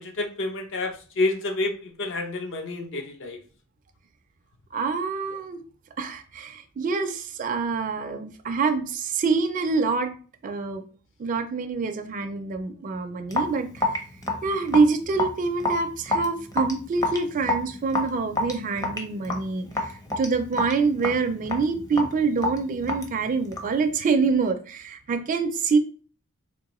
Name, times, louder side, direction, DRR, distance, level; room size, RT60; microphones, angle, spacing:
voice 1, 0.0-3.4, left 2 dB, 60° left, 5 dB, 0.6 m, -29 dB
voice 2, 4.7-5.6 6.0-10.1 10.4-10.8 11.2-14.0 14.4-25.8, right 4 dB, 35° right, 5 dB, 0.3 m, -26 dB
Raindrop / Drip, 13.3-23.8, left 2 dB, 15° left, 0.6 m, -29 dB
3.7 x 2.5 x 2.9 m, 0.39 s
head